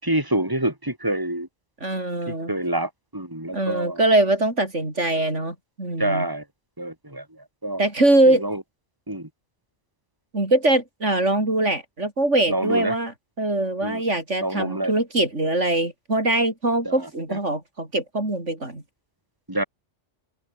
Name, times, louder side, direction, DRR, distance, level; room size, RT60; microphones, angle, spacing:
voice 1, 0.0-1.5 2.3-4.0 6.0-6.4 6.8-7.2 7.6-7.8 8.4-8.6 9.1-9.3 12.5-12.9 13.8-14.0 14.4-14.9 16.8-17.0 17.3-17.4 19.5-19.6, right 1 dB, 15° right, 5.0 m, -26 dB
voice 2, 1.8-2.5 3.5-6.3 7.8-8.4 10.3-18.8, right 2 dB, 75° right, 6.1 m, -22 dB
omnidirectional pair, 1.2 m